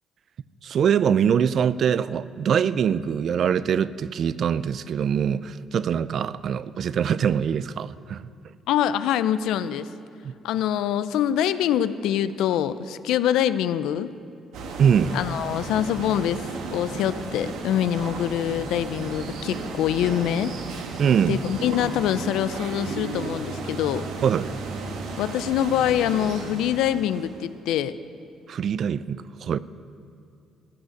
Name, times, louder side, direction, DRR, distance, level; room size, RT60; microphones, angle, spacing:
voice 1, 0.6-8.3 10.2-10.3 14.8-15.2 21.0-21.4 24.2-24.5 28.5-29.6, right 8 dB, 60° right, 17 dB, 0.4 m, -23 dB
voice 2, 8.7-9.9 10.4-14.1 15.1-20.5 21.3-24.0 25.2-28.0, left 10 dB, 80° left, 14 dB, 0.5 m, -25 dB
sound 1, 14.5-27.5, right 3 dB, 85° right, 1.5 m, -34 dB
16.0 x 6.4 x 9.3 m, 2.4 s
cardioid pair, 80°, 0 cm